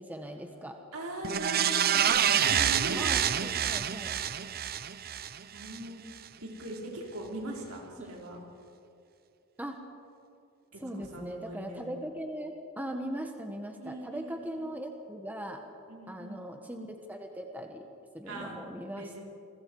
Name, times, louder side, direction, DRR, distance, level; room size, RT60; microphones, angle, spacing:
voice 1, 0.0-0.8 3.0-4.1 8.0-8.1 9.6-9.8 10.8-15.6 16.1-17.8 18.1-19.1, right 1 dB, 10° right, 3 dB, 1.5 m, -39 dB
voice 2, 0.9-3.1 5.5-6.1 6.4-8.4 10.7-12.0 13.8-14.6 15.9-16.4 18.3-18.6 18.9-19.2, right 1 dB, 70° right, -1 dB, 4.8 m, -40 dB
sound 1, 1.2-5.8 6.2-6.3, right 9 dB, 45° right, 0.7 m, -27 dB
29.5 x 22.0 x 4.9 m, 2.6 s
head